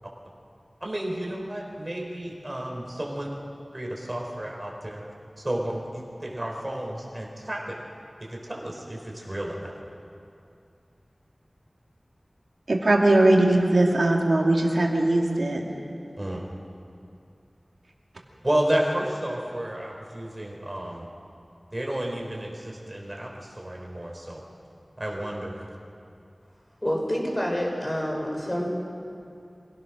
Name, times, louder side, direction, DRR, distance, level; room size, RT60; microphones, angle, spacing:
voice 1, 0.8-3.3 3.7-5.0 5.4-7.8 8.3-9.7 16.2-16.4 18.4-21.1 21.7-24.4 25.0-25.6, right 1 dB, 30° right, -1 dB, 4.5 m, -31 dB
voice 2, 12.7-15.6, right 1 dB, 80° right, 0 dB, 2.6 m, -20 dB
voice 3, 26.8-28.7, equal, 25° left, -1 dB, 5.2 m, -27 dB
26.0 x 17.0 x 6.3 m, 2.5 s
wide cardioid pair, 55°, 0 cm